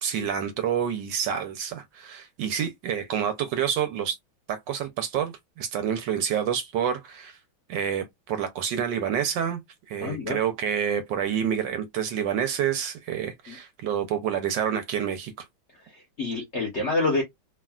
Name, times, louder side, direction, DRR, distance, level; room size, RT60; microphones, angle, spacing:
voice 1, 0.0-4.2 4.5-7.4 7.7-9.6 9.9-15.3, right 8 dB, 75° right, 1.1 m, -28 dB
voice 2, 10.0-10.4 13.5-13.6 15.8-17.2, left 3 dB, 60° left, 0.7 m, -27 dB
3.2 x 2.3 x 2.2 m
omnidirectional pair, 2.2 m